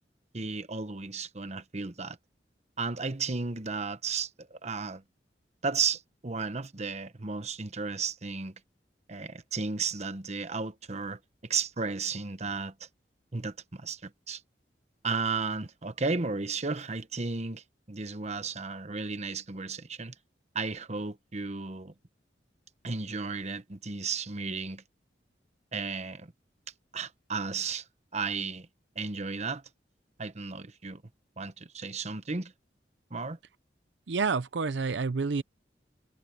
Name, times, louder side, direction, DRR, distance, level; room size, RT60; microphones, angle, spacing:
voice 1, 0.3-2.2 2.8-5.0 5.6-8.5 9.1-12.9 13.3-14.4 15.0-20.1 20.5-21.9 22.8-24.8 25.7-26.3 26.9-27.9 28.1-28.7 28.9-29.6 30.2-31.0 31.4-32.5 33.1-33.4, right 4 dB, 40° right, 1.1 m, -34 dB
voice 2, 34.1-35.4, right 4 dB, 85° right, 0.6 m, -28 dB
head